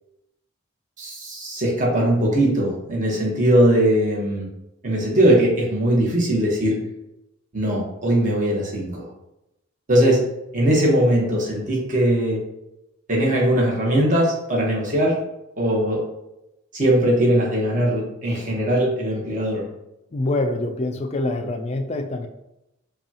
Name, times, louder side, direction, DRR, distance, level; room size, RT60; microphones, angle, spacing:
voice 1, 1.0-4.5 4.8-6.8 7.5-9.0 9.9-10.3 10.5-12.4 13.1-15.1 15.6-16.0 16.7-19.6, right 1 dB, 40° right, -3 dB, 1.1 m, -20 dB
voice 2, 20.1-22.3, left 2 dB, 30° left, 6 dB, 0.4 m, -25 dB
5.2 x 2.3 x 2.8 m, 0.90 s
head